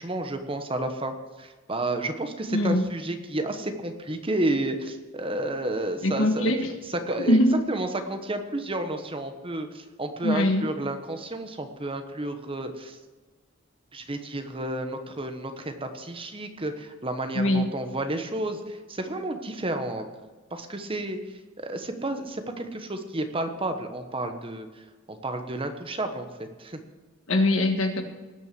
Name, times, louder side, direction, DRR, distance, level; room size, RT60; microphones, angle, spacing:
voice 1, 0.0-6.5 6.9-7.4 7.7-13.0 13.9-20.1 20.5-21.2 21.6-24.7 25.1-26.8, right 1 dB, 25° right, 7 dB, 1.2 m, -31 dB
voice 2, 2.5-2.9 6.0-6.7 7.2-7.5 10.2-10.7 17.3-17.7 27.3-28.0, left 1 dB, 85° left, 6 dB, 1.6 m, -22 dB
19.0 x 6.4 x 6.9 m, 1.3 s
head